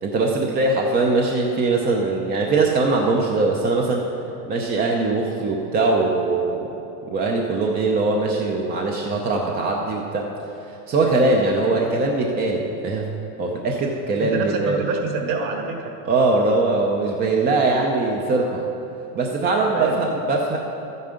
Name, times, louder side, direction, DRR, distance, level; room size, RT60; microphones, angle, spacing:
voice 1, 0.0-4.1 4.5-6.8 7.1-10.3 10.7-13.1 13.4-14.8 16.0-18.6 19.1-20.6, right 3 dB, 20° right, 0 dB, 0.6 m, -21 dB
voice 2, 14.2-15.9 19.7-20.1, right 4 dB, 40° right, 2 dB, 1.7 m, -27 dB
12.0 x 9.4 x 5.1 m, 3.0 s
supercardioid pair, 145°, 47 cm